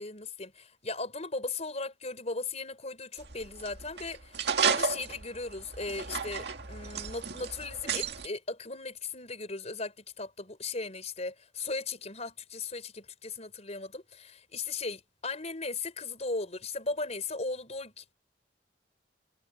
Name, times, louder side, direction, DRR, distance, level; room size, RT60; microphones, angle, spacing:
voice 1, 0.0-18.1, left 3 dB, 35° left, 5.1 m, -37 dB
sound 1, 3.2-8.3, right 6 dB, 60° right, 2.3 m, -33 dB
head